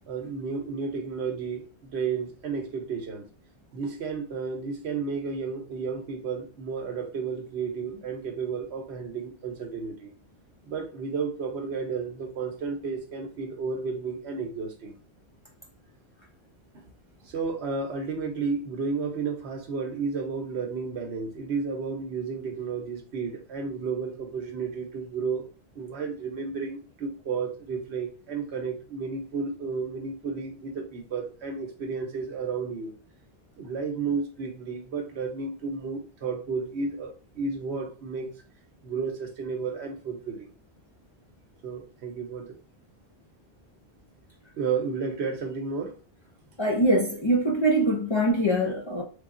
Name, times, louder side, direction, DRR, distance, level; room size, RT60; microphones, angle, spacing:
voice 1, 0.1-3.2 3.7-10.1 10.7-15.0 17.2-25.5 25.7-32.9 33.6-38.3 38.8-40.5 41.6-42.5 44.6-46.0, right 5 dB, 90° right, 1.0 m, -32 dB
voice 2, 46.6-49.0, right 1 dB, 35° left, 0.5 m, -23 dB
3.5 x 2.4 x 3.6 m
omnidirectional pair, 1.1 m